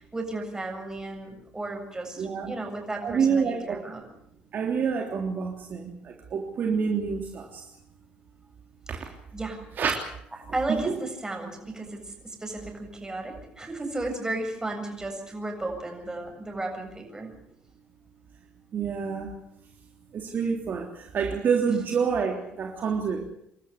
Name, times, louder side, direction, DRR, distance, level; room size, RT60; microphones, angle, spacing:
voice 1, 0.0-4.0 8.9-9.6 10.4-17.3, right 2 dB, 15° right, 3 dB, 7.4 m, -34 dB
voice 2, 2.2-2.5 3.0-3.8 4.5-7.6 8.9-9.0 9.8-9.9 10.7-10.8 18.7-19.3 20.1-23.2, right 6 dB, 50° right, 2 dB, 3.3 m, -27 dB
28.0 x 13.0 x 8.2 m, 0.75 s
supercardioid pair, 85°, 4 cm